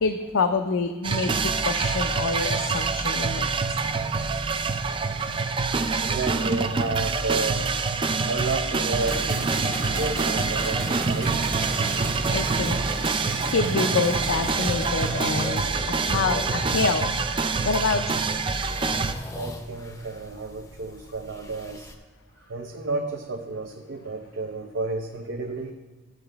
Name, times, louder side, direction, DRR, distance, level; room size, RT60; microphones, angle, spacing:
voice 1, 0.0-1.3 1.6-3.5 12.3-12.8 13.5-15.6 16.1-17.1 17.6-18.2, left 4 dB, 85° left, 5 dB, 0.5 m, -26 dB
sound 1, 1.0-19.1, right 4 dB, 25° right, 0.3 m, -26 dB
sound 2, 2.6-22.0, left 1 dB, 15° left, 0.6 m, -45 dB
voice 2, 6.0-7.7 8.3-11.5 13.4-13.5 19.4-21.9 22.5-25.7, right 3 dB, 65° right, 3 dB, 0.6 m, -31 dB
sound 3, 9.0-16.1, right 2 dB, 45° right, 1.0 m, -33 dB
12.0 x 7.7 x 3.4 m, 1.3 s
head